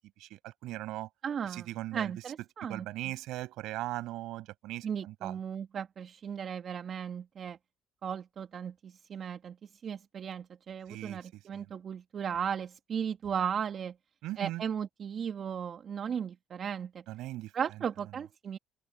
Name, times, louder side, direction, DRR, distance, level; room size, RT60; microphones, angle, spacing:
voice 1, 0.2-1.1 1.4-2.1 2.7-5.4 10.9-11.7 14.2-14.6 17.1-17.5, right 16 dB, 75° right, 6.6 m, -39 dB
voice 2, 1.2-1.7 1.9-2.9 4.8-7.6 8.0-13.9 14.4-17.0 17.5-18.6, right 7 dB, 50° right, 1.8 m, -36 dB
open air
hypercardioid pair, 60°, 0 cm